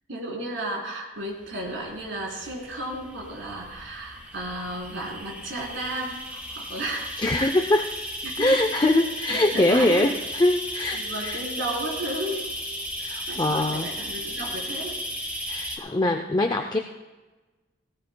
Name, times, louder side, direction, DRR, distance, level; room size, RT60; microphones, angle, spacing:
voice 1, 0.1-7.2 8.2-8.9 9.3-10.1 10.9-12.5 13.3-15.0, right 1 dB, 70° right, -3 dB, 3.7 m, -33 dB
sound 1, 1.4-15.8, equal, 5° right, 1.6 m, -35 dB
voice 2, 7.2-7.9 8.4-11.4 13.0-13.9 15.5-16.8, left 1 dB, 20° left, 5 dB, 0.5 m, -23 dB
17.5 x 17.0 x 2.2 m, 1.2 s
head